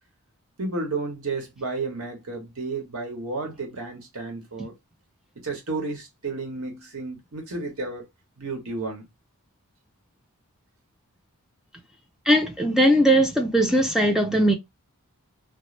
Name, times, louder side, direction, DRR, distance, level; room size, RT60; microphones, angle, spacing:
voice 1, 0.6-4.7 5.4-8.1 8.4-9.0, right 3 dB, 70° right, 1.0 m, -32 dB
voice 2, 12.3-14.5, equal, ahead, 0.3 m, -19 dB
2.5 x 2.0 x 3.0 m
head